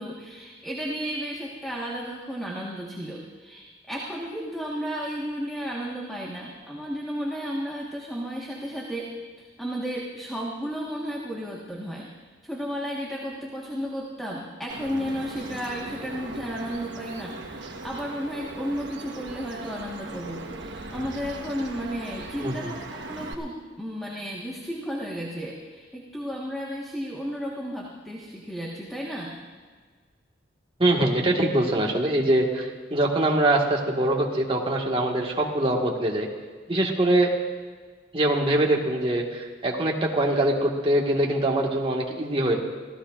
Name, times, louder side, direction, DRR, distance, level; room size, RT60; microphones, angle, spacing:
voice 1, 0.0-9.1 9.4-12.1 12.4-29.4, equal, ahead, -4 dB, 1.5 m, -33 dB
Bird vocalization bird call bird song, 14.7-23.3, right 2 dB, 70° right, 1.2 m, -39 dB
voice 2, 30.8-36.3 36.7-37.3 38.1-42.6, right 1 dB, 30° right, -1 dB, 1.7 m, -23 dB
25.5 x 16.0 x 2.5 m, 1.5 s
head